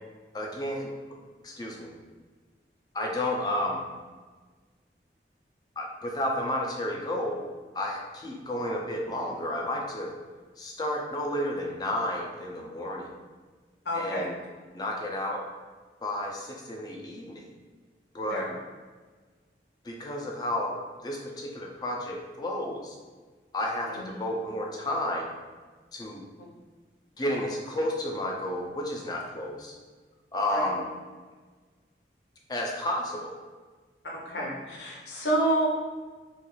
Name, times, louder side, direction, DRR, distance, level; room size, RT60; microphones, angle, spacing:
voice 1, 0.3-0.9 1.4-1.9 2.9-3.8 5.8-7.4 7.7-10.1 10.6-13.1 13.9-14.4 14.7-15.4 16.0-17.5 18.1-18.5 19.8-20.8 21.0-23.0 23.5-25.3 25.9-26.2 27.2-29.7 30.3-30.8 32.5-33.4, left 1 dB, 25° left, -1 dB, 0.3 m, -31 dB
voice 2, 13.9-14.2 18.3-18.5 23.8-24.1 30.5-30.8 34.0-35.7, right 1 dB, 80° left, -3 dB, 0.7 m, -29 dB
2.4 x 2.3 x 3.0 m, 1.4 s
head